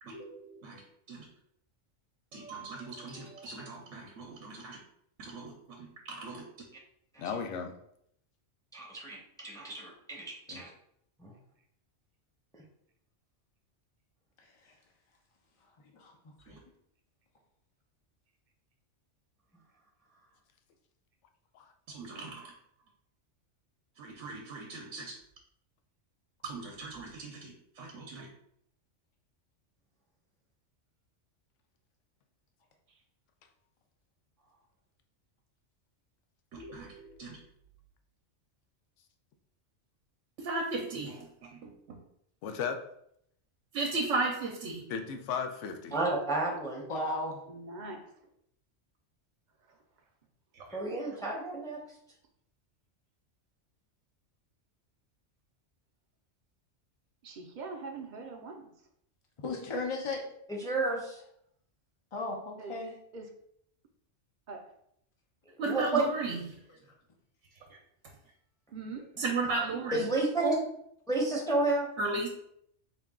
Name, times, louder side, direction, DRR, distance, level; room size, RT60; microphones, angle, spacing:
voice 1, 0.0-1.3 2.3-4.8 5.2-6.5 16.5-16.6 21.9-22.5 24.0-25.2 26.4-28.3 36.5-37.4 40.4-42.0 43.7-44.9 50.5-50.8 65.6-66.6 67.7-67.8 69.2-70.1 72.0-72.3, right 3 dB, 80° right, 0 dB, 1.0 m, -36 dB
voice 2, 7.2-7.7 10.5-10.6 21.5-21.6 42.4-42.8 44.9-46.0, left 6 dB, 75° left, 6 dB, 0.9 m, -35 dB
voice 3, 8.7-10.7 11.2-11.3 45.9-46.8 50.7-51.8 60.5-61.2 65.6-66.0 69.9-70.6 71.1-71.9, right 2 dB, 5° left, -2 dB, 0.6 m, -31 dB
voice 4, 46.9-47.4 59.4-60.2 62.1-62.9, left 2 dB, 45° left, 0 dB, 0.4 m, -35 dB
voice 5, 47.5-48.3 49.6-49.8 57.2-58.9 62.6-62.8 63.1-63.3 64.5-64.8 68.7-69.1, right 3 dB, 50° right, 3 dB, 0.6 m, -43 dB
4.5 x 2.2 x 3.6 m, 0.72 s
omnidirectional pair, 1.3 m